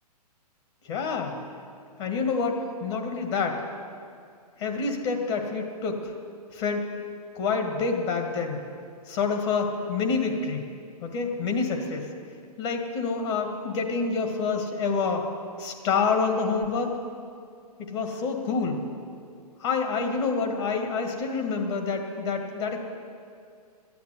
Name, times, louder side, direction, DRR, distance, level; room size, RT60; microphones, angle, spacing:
voice 1, 0.9-1.3 2.0-3.6 4.6-6.1 6.5-6.9 7.4-8.6 9.1-10.6 11.0-12.1 12.6-15.2 15.6-17.0 17.9-18.8 19.6-22.8, left 4 dB, 45° left, 3 dB, 1.9 m, -27 dB
13.0 x 9.4 x 7.9 m, 2.4 s
hypercardioid pair, 135°, 20 cm